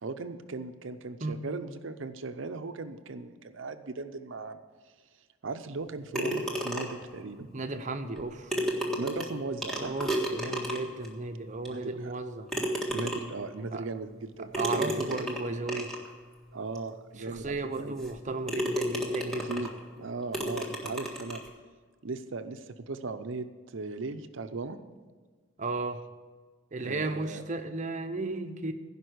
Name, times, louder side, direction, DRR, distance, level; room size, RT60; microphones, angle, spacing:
voice 1, 0.0-4.6 5.4-7.5 9.0-9.9 11.7-12.1 12.9-15.2 16.5-18.0 19.5-21.4 22.0-24.8 26.7-27.4, right 3 dB, 70° right, 9 dB, 0.7 m, -38 dB
sound 1, 6.1-7.1 8.2-8.3 8.5-11.1 11.7-11.8 12.5-13.5 14.5-16.1 16.8-16.9 17.4-17.5 18.0-18.2 18.5-19.8 20.3-21.5, equal, ahead, 1.6 m, -32 dB
voice 2, 7.5-8.6 9.8-12.5 13.7-13.9 14.4-16.0 17.2-19.5 25.6-26.0 26.7-28.7, right 3 dB, 35° right, 7 dB, 0.8 m, -34 dB
16.0 x 5.4 x 8.0 m, 1.4 s
head